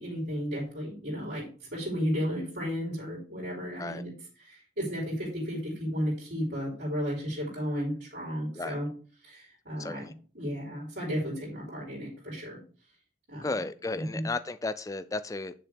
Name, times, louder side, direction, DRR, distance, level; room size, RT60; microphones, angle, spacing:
voice 1, 0.0-1.5 1.7-4.1 4.4-8.9 9.2-12.6 13.3-13.5 13.9-14.2, equal, 60° right, -5 dB, 4.4 m, -33 dB
voice 2, 9.8-10.1 13.4-15.5, left 3 dB, 15° left, 12 dB, 0.4 m, -34 dB
9.0 x 7.6 x 3.5 m, 0.40 s
head